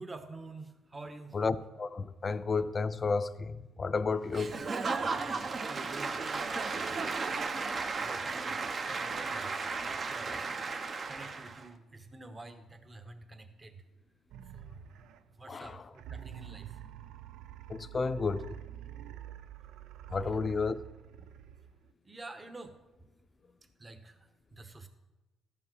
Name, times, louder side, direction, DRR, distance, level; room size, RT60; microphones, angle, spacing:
voice 1, 0.0-1.4 5.0-6.4 6.7-6.9 7.7-9.5 9.8-10.5 10.8-13.8 14.5-14.9 15.4-16.8 20.3-20.4 21.2-21.3 22.0-22.7 23.8-24.9, right 2 dB, 25° right, 1.1 m, -48 dB
voice 2, 1.3-4.5 7.1-7.4 15.5-15.8 17.7-18.6 20.1-20.8, left 4 dB, 35° left, 0.5 m, -32 dB
Applause / Crowd, 4.3-11.7, right 4 dB, 45° right, 0.9 m, -35 dB
sound 1, 14.3-15.4 16.0-21.9, right 10 dB, 90° right, 0.4 m, -47 dB
13.0 x 5.5 x 6.2 m
cardioid pair, 90°, 0 cm